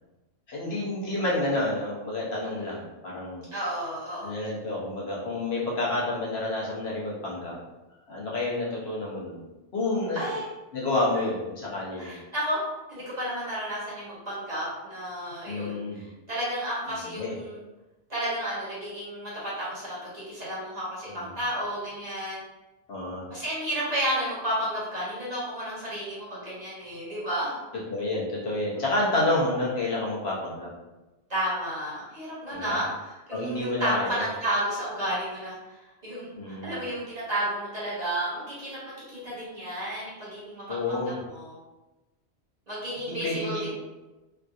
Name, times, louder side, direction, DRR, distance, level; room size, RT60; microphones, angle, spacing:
voice 1, 0.5-3.4 4.2-7.6 8.1-9.4 9.7-10.3 10.7-12.2 15.5-16.0 16.9-17.3 21.2-21.3 22.9-23.2 27.7-30.7 32.5-32.8 33.3-34.3 36.4-36.8 40.7-41.2 43.1-43.7, left 2 dB, 70° left, -6 dB, 1.1 m, -29 dB
voice 2, 3.5-4.3 10.1-10.5 11.1-11.2 12.0-12.6 12.9-17.6 18.1-22.4 23.3-27.6 31.3-41.6 42.7-43.7, equal, 40° right, -9 dB, 1.3 m, -32 dB
3.5 x 2.6 x 2.4 m, 1.1 s
omnidirectional pair, 1.1 m